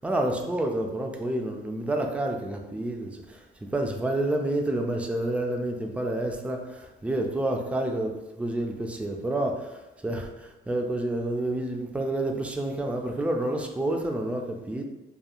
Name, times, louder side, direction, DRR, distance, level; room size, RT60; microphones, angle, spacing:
voice 1, 0.0-3.4 3.7-14.8, right 1 dB, 5° right, 2 dB, 0.3 m, -29 dB
3.0 x 2.3 x 2.3 m, 1.0 s
cardioid pair, 90°, 20 cm